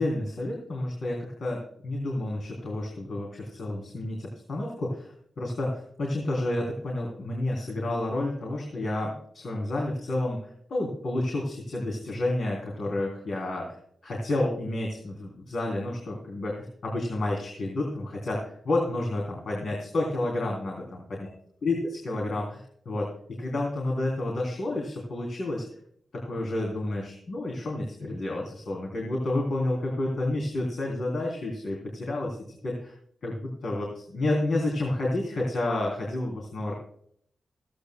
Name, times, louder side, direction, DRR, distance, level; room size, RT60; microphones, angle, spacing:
voice 1, 0.0-13.8 14.0-20.8 21.2-21.3 21.6-25.6 26.1-32.9 33.2-36.7, left 2 dB, 60° left, -1 dB, 3.3 m, -30 dB
16.0 x 15.5 x 2.3 m, 0.65 s
wide cardioid pair, 155°, 0 cm